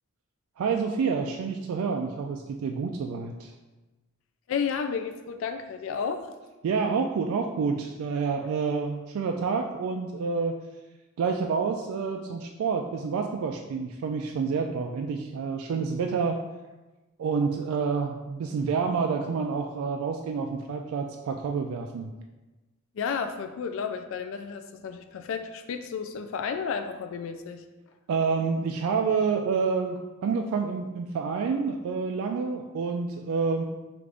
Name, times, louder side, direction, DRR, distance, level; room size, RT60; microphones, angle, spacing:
voice 1, 0.6-3.5 6.6-10.6 11.2-16.4 17.2-22.1 28.1-33.6, right 5 dB, 85° right, 3 dB, 0.3 m, -28 dB
voice 2, 4.5-6.3 22.9-27.6, left 6 dB, 65° left, 7 dB, 0.3 m, -32 dB
4.9 x 2.5 x 3.3 m, 1.1 s
head